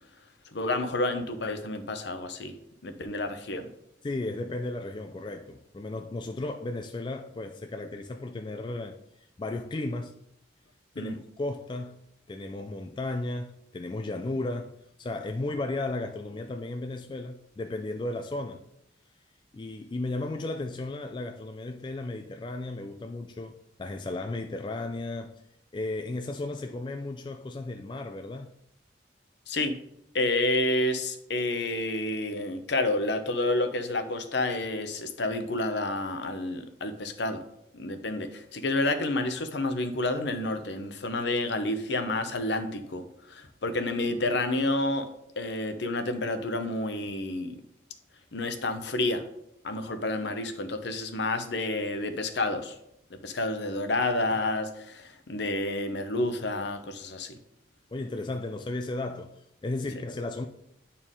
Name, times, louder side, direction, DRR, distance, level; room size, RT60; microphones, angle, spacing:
voice 1, 0.5-2.6 2.8-3.7 11.0-11.2 29.5-29.8 30.1-37.4 37.7-45.1 45.4-47.6 48.3-49.2 49.6-52.7 53.1-57.4, left 2 dB, 65° left, 0.8 m, -29 dB
voice 2, 4.0-9.0 9.4-10.2 11.0-12.0 12.3-18.6 19.5-25.4 25.7-28.5 57.9-60.5, left 2 dB, 25° left, 0.3 m, -34 dB
8.9 x 4.3 x 3.7 m
head